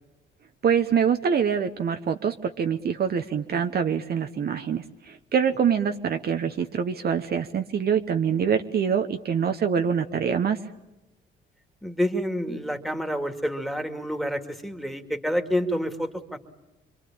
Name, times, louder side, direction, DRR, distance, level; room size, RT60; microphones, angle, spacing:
voice 1, 0.6-10.6, right 7 dB, 50° right, 7 dB, 1.0 m, -25 dB
voice 2, 11.8-16.4, equal, ahead, 6 dB, 2.3 m, -28 dB
27.0 x 23.5 x 8.8 m, 0.98 s
cardioid pair, 90°, 20 cm